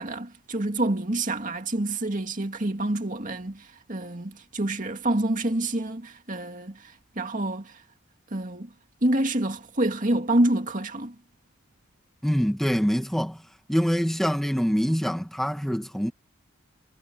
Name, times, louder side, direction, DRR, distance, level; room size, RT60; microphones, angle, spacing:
voice 1, 0.0-7.8 8.3-8.7 9.0-11.1, right 1 dB, 40° right, 2.3 m, -27 dB
voice 2, 12.2-13.4 13.7-16.1, equal, ahead, 2.0 m, -25 dB
head